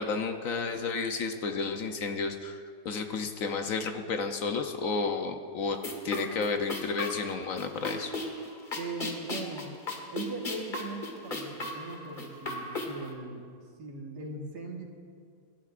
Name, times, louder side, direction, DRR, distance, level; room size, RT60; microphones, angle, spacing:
voice 1, 0.0-5.8 6.0-8.1, left 4 dB, 60° left, 6 dB, 1.0 m, -32 dB
sound 1, 5.7-13.1, left 2 dB, 30° left, 1.4 m, -37 dB
voice 2, 8.7-9.8 10.1-13.5 13.8-14.8, right 3 dB, 80° right, 1 dB, 2.1 m, -39 dB
25.5 x 12.0 x 2.5 m, 2.2 s
omnidirectional pair, 1.7 m